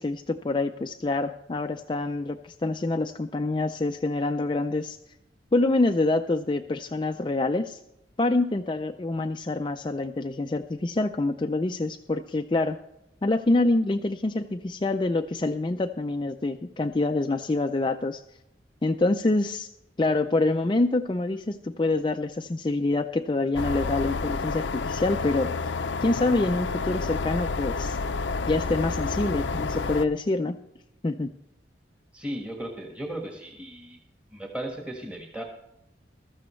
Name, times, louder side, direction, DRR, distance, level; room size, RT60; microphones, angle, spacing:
voice 1, 0.0-5.0 5.5-7.8 8.2-12.8 13.2-18.2 18.8-19.7 20.0-25.5 26.0-28.0 28.5-30.6 31.0-31.3, left 2 dB, 25° left, 6 dB, 0.4 m, -26 dB
sound 1, 23.5-30.0, left 4 dB, 85° left, 0.6 m, -29 dB
voice 2, 32.1-34.0 34.3-35.4, right 1 dB, 5° right, 1 dB, 1.4 m, -36 dB
15.0 x 13.5 x 3.1 m, 0.84 s
head